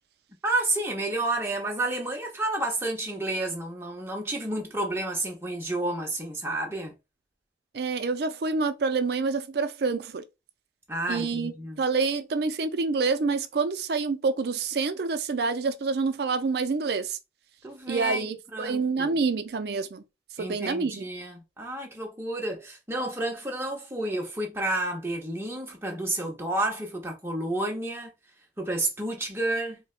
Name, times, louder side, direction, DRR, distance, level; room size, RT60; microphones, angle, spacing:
voice 1, 0.4-6.9 10.9-11.8 17.6-18.3 18.5-19.1 20.4-28.1 28.6-29.8, right 2 dB, 15° right, 0.8 m, -30 dB
voice 2, 7.7-10.2 11.1-11.5 11.8-17.2 17.9-20.0 20.4-21.0, right 4 dB, 60° right, 0.4 m, -27 dB
4.2 x 2.1 x 2.4 m
head